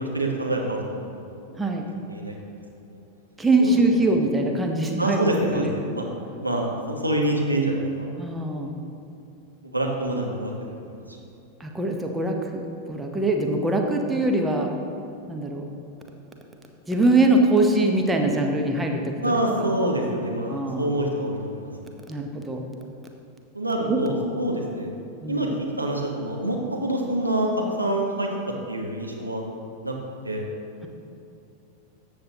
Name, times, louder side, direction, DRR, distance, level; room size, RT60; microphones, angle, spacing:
voice 1, 0.0-1.3 2.1-2.6 2.9-3.0 3.6-3.7 5.0-6.1 6.4-8.1 9.6-11.2 19.2-21.7 22.1-22.2 23.5-24.9 25.3-25.5 25.8-27.5 27.8-29.4 29.8-29.9 30.2-30.5, right 1 dB, 85° right, -1 dB, 1.2 m, -26 dB
voice 2, 3.4-5.7 8.2-8.7 11.6-14.7 15.3-15.7 16.9-19.3 20.5-20.9 22.1-22.6 23.9-24.0 25.2-25.5, right 2 dB, 10° right, 2 dB, 0.9 m, -23 dB
13.5 x 7.8 x 2.9 m, 2.7 s
figure-of-eight pair, 90°, 0 cm